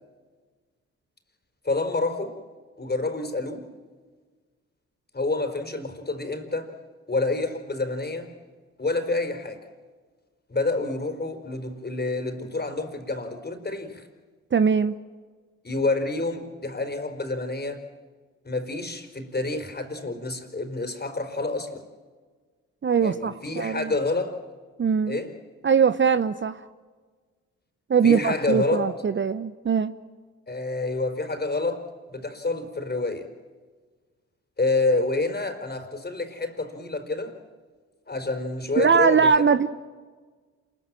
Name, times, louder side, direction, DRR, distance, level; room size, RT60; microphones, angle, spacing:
voice 1, 1.6-2.4 2.8-3.7 5.1-6.7 7.1-8.3 8.8-9.6 10.5-14.1 15.6-17.8 18.4-21.8 23.0-24.4 25.1-25.3 28.0-28.9 30.5-33.3 34.6-37.4 38.1-39.6, left 3 dB, 30° left, 7 dB, 4.3 m, -28 dB
voice 2, 14.5-14.9 22.8-23.9 24.8-25.2 25.6-26.7 27.9-30.0 38.8-39.7, right 6 dB, 35° right, 13 dB, 0.8 m, -21 dB
28.0 x 21.5 x 7.5 m, 1.5 s
hypercardioid pair, 45°, 35 cm